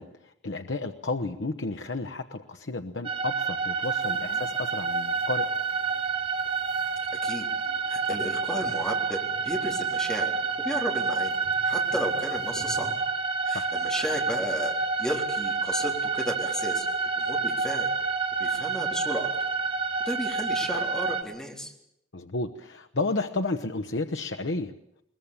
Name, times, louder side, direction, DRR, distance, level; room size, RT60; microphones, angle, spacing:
voice 1, 0.0-5.5 13.5-13.7 22.1-24.7, left 3 dB, 90° left, 5 dB, 1.0 m, -32 dB
sound 1, 3.0-21.2, right 4 dB, 30° right, 1.6 m, -28 dB
sound 2, 3.8-12.9, right 2 dB, 65° right, 6.6 m, -50 dB
voice 2, 7.9-10.3 10.6-11.4 11.6-12.9 13.4-14.7 15.0-16.9 17.1-17.9 18.4-19.3 20.1-21.7, equal, 5° left, 0 dB, 3.9 m, -33 dB
22.0 x 20.5 x 8.8 m, 0.78 s
head